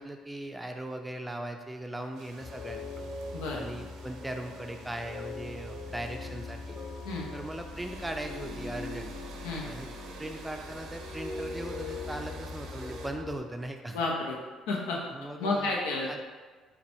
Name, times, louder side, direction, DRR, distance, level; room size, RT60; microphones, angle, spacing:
voice 1, 0.0-3.1 3.5-6.8 7.3-9.1 9.6-9.9 10.2-14.0 15.1-15.8 16.1-16.2, right 1 dB, 10° right, 4 dB, 0.4 m, -39 dB
sound 1, 2.1-13.1, right 4 dB, 75° right, 0.5 m, -50 dB
sound 2, 2.4-13.4, left 3 dB, 30° left, 0.7 m, -41 dB
voice 2, 13.9-14.4 14.7-15.0 15.4-16.1, left 3 dB, 90° left, -2 dB, 0.7 m, -31 dB
4.2 x 2.3 x 4.3 m, 1.4 s
supercardioid pair, 80°, 0 cm